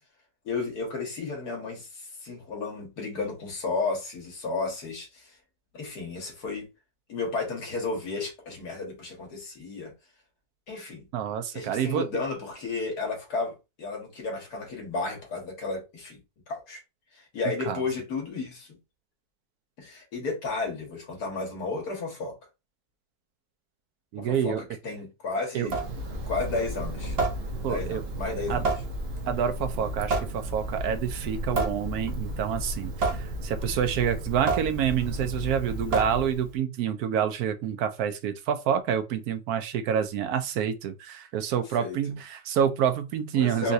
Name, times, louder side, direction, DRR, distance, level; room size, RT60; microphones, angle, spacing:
voice 1, 0.5-5.4 5.7-6.7 7.1-9.9 10.7-11.1 11.5-16.2 16.5-16.8 17.1-18.8 19.8-22.4 24.2-25.8 26.3-27.2 27.7-28.7 41.5-42.0 43.3-43.7, left 3 dB, 85° left, 1.8 m, -33 dB
voice 2, 11.1-12.1 17.7-17.8 24.1-24.6 25.5-25.7 27.6-28.0 28.5-28.6 29.3-43.7, right 8 dB, 75° right, 1.0 m, -28 dB
Water tap faucet / Sink (filling or washing) / Drip, 25.6-36.6, right 2 dB, 50° right, 0.8 m, -31 dB
3.9 x 2.4 x 2.6 m
omnidirectional pair, 1.6 m